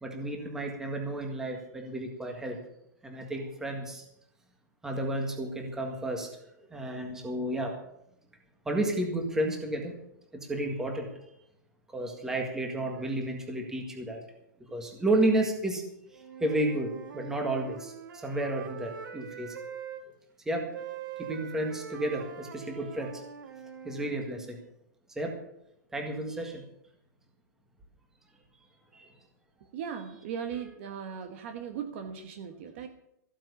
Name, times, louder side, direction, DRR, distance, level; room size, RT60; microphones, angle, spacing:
voice 1, 0.0-2.6 3.0-4.0 4.8-6.3 6.7-7.7 8.6-9.9 10.5-11.1 11.9-14.2 14.7-15.8 16.4-19.5 20.4-20.7 21.2-23.1 23.8-24.6 25.1-25.3 25.9-26.6 28.9-29.1 30.5-30.7, right 1 dB, 5° right, 2 dB, 1.8 m, -31 dB
Wind instrument woodwind instrument, 16.1-20.0 20.7-24.2, right 8 dB, 90° right, 1.7 m, -43 dB
voice 2, 29.7-32.9, right 7 dB, 35° right, 6 dB, 1.3 m, -38 dB
15.0 x 8.9 x 7.0 m, 0.79 s
hypercardioid pair, 170°, 10 cm